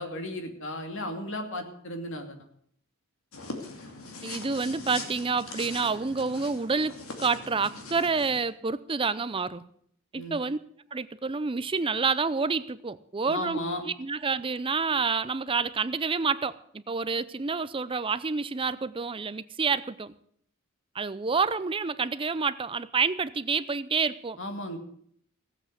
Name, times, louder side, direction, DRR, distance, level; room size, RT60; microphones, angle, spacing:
voice 1, 0.0-2.4 10.1-10.4 13.3-13.8 24.4-24.8, left 1 dB, 60° left, 5 dB, 2.5 m, -35 dB
sound 1, 3.3-8.4, left 3 dB, 80° left, 2.6 m, -41 dB
voice 2, 4.2-9.7 10.1-10.6 10.9-13.6 13.8-20.1 20.9-24.4, right 4 dB, 25° right, 15 dB, 0.5 m, -28 dB
16.0 x 8.0 x 7.9 m, 0.65 s
head